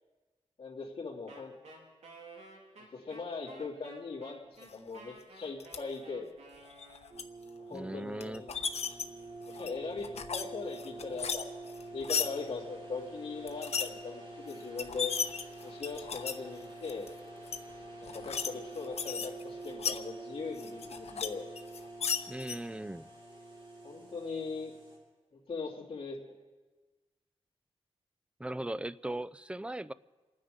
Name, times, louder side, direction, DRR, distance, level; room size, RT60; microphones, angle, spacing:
voice 1, 0.6-1.5 2.9-6.3 7.7-8.5 9.5-11.5 11.9-15.1 15.6-17.1 18.0-21.5 23.8-24.7 25.3-26.3, left 4 dB, 50° left, -6 dB, 3.0 m, -40 dB
Wind instrument woodwind instrument, 1.3-7.3, right 2 dB, 85° right, 3.9 m, -53 dB
sound 1, 5.6-5.8 6.7-7.2 8.2-9.0 9.5-10.4 10.7-12.3 13.5-13.9 14.5-14.6 14.8-16.4 16.8-17.1 17.5-17.6 18.0-18.5 18.8-20.0 20.6-21.3 21.6-22.6, left 6 dB, 75° left, 1.0 m, -35 dB
sound 2, 7.1-25.0, right 2 dB, 50° right, 6.3 m, -47 dB
voice 2, 7.7-8.4 22.3-23.1 28.4-29.9, right 1 dB, 10° right, 17 dB, 0.4 m, -38 dB
28.5 x 9.6 x 5.2 m, 1.3 s
wide cardioid pair, 85°, 11 cm